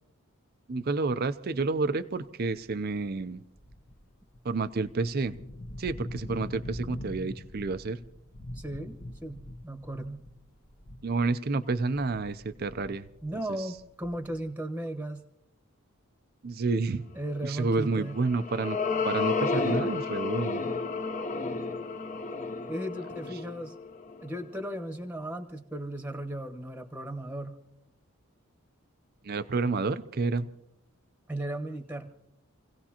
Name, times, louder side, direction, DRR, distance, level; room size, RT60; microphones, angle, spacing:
voice 1, 0.7-3.4 4.4-5.4 5.8-8.0 11.0-13.1 16.4-17.1 17.4-18.8 19.0-20.6 29.2-30.5, right 3 dB, 45° right, 0.5 m, -29 dB
sound 1, 1.7-2.0 2.5-11.3 11.6-14.5, left 1 dB, 55° left, 1.2 m, -43 dB
voice 2, 8.5-9.0 9.2-10.3 13.2-15.2 17.1-18.2 22.7-23.7 24.2-27.6 31.3-32.1, right 1 dB, 10° right, 1.1 m, -36 dB
sound 2, 17.9-24.5, left 4 dB, 35° left, 1.0 m, -31 dB
28.5 x 17.0 x 2.9 m
head